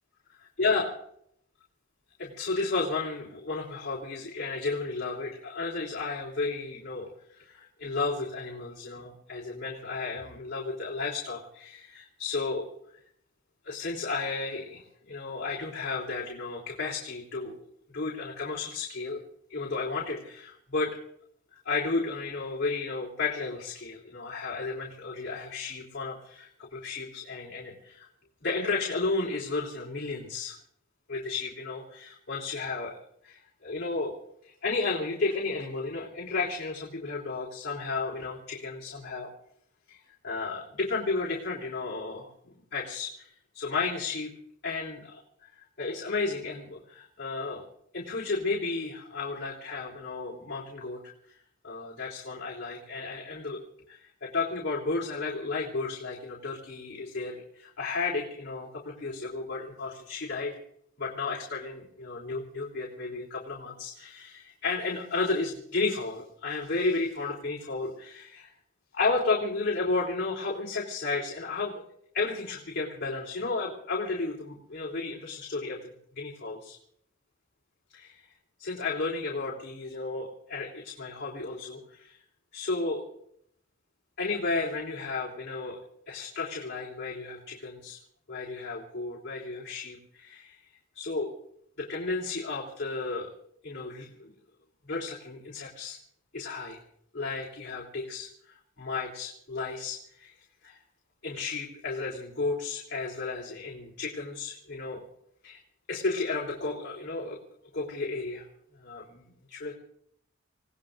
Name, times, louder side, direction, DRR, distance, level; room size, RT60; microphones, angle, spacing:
voice 1, 0.6-0.9 2.2-12.7 13.6-17.6 17.9-19.2 19.5-21.0 21.5-28.1 28.4-30.6 31.1-34.1 34.4-39.3 39.9-44.3 44.6-45.2 45.6-47.6 47.9-51.0 51.3-51.4 51.6-53.6 53.9-60.6 61.0-68.5 68.9-71.7 72.1-75.8 76.2-76.8 77.9-78.3 78.6-82.2 82.5-83.0 84.2-85.8 86.1-88.0 88.3-90.6 91.0-91.3 91.8-93.3 93.6-94.3 94.9-96.0 96.3-96.8 97.1-100.4 100.6-100.8 101.2-105.0 105.4-105.6 105.9-107.4 107.7-108.5 108.8-109.7, left 3 dB, 55° left, -4 dB, 3.6 m, -33 dB
29.0 x 18.0 x 2.6 m, 0.71 s
head